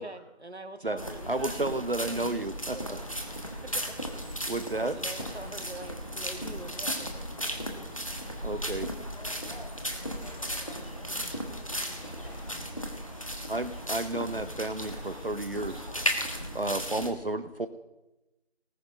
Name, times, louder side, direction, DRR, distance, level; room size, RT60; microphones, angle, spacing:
voice 1, 0.0-1.7 2.1-3.1 3.5-4.0 4.8-7.1, right 2 dB, 85° right, 9 dB, 1.5 m, -45 dB
voice 2, 0.7-1.2 3.0-3.1 5.2-5.4 6.0-6.2 8.2-8.5 8.7-9.3 9.9-10.0 10.6-10.9 11.3-12.4 14.7-17.0 17.5-17.7, equal, 10° right, -12 dB, 5.0 m, -57 dB
sound 1, 1.0-17.1, equal, 30° left, 1.2 m, -36 dB
voice 3, 1.3-2.8 4.4-5.0 8.4-8.9 13.5-15.7 16.5-17.7, right 2 dB, 60° right, 11 dB, 0.8 m, -31 dB
sound 2, 3.2-15.5, left 1 dB, 80° left, 2.6 m, -54 dB
voice 4, 9.0-11.2, left 1 dB, 55° left, 1 dB, 3.0 m, -51 dB
19.0 x 7.0 x 5.4 m, 1.0 s
figure-of-eight pair, 175°, 32 cm